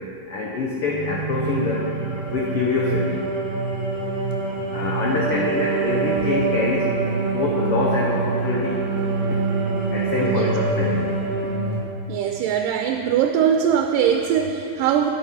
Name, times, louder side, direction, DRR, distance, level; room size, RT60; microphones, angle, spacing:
voice 1, 0.3-1.9 2.3-3.2 4.7-6.9 7.2-8.8 9.9-11.1, left 3 dB, 90° left, -3 dB, 1.2 m, -25 dB
sound 1, 0.8-11.8, right 3 dB, 50° right, 2.4 m, -25 dB
voice 2, 10.2-10.5 12.1-15.1, right 8 dB, 85° right, 5 dB, 2.2 m, -21 dB
9.7 x 9.6 x 4.9 m, 3.0 s
omnidirectional pair, 3.8 m